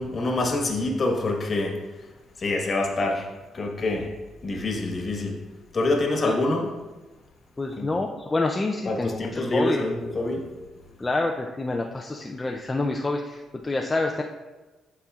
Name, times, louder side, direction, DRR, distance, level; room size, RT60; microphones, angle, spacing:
voice 1, 0.0-1.8 2.4-3.3 3.5-4.1 4.4-5.4 5.7-6.7 7.8-7.9 8.8-10.5, left 2 dB, 40° left, 1 dB, 1.3 m, -26 dB
voice 2, 7.6-9.8 11.0-14.2, left 2 dB, 20° left, 1 dB, 0.5 m, -27 dB
11.5 x 4.3 x 2.4 m, 1.2 s
cardioid pair, 90°, 0 cm